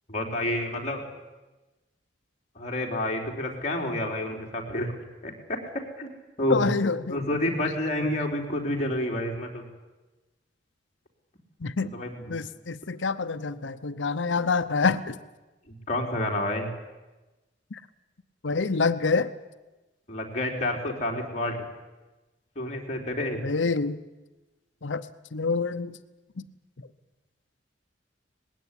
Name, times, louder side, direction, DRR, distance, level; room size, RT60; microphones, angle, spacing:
voice 1, 0.1-1.0 2.6-5.0 5.2-6.1 6.4-6.7 7.1-9.6 11.8-12.4 15.7-16.7 20.1-21.6 22.6-23.4, left 1 dB, 40° left, 1 dB, 3.9 m, -29 dB
voice 2, 6.5-7.2 11.6-11.9 12.3-15.1 17.7-17.8 18.4-19.3 23.4-24.0 24.8-25.0 25.3-25.9, left 4 dB, 75° left, 12 dB, 0.8 m, -26 dB
20.0 x 16.5 x 9.9 m, 1.1 s
head